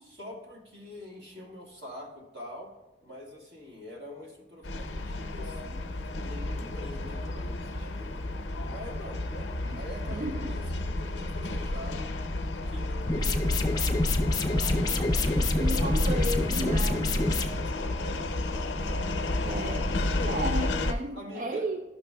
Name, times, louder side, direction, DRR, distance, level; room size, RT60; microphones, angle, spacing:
voice 1, 0.1-2.7 3.0-5.8 6.2-8.3 8.6-12.1 12.5-15.0 15.6-19.5 20.1-20.4 21.1-21.7, left 1 dB, 70° right, -3 dB, 1.8 m, -44 dB
sound 1, 4.6-20.9, left 2 dB, 90° left, 0.6 m, -32 dB
voice 2, 10.1-10.6 15.4-17.0 19.4-19.9 20.3-21.8, right 1 dB, 45° right, 5 dB, 0.3 m, -34 dB
sound 2, 13.1-17.5, left 2 dB, 20° left, 0.5 m, -26 dB
12.0 x 6.1 x 2.2 m, 1.0 s
head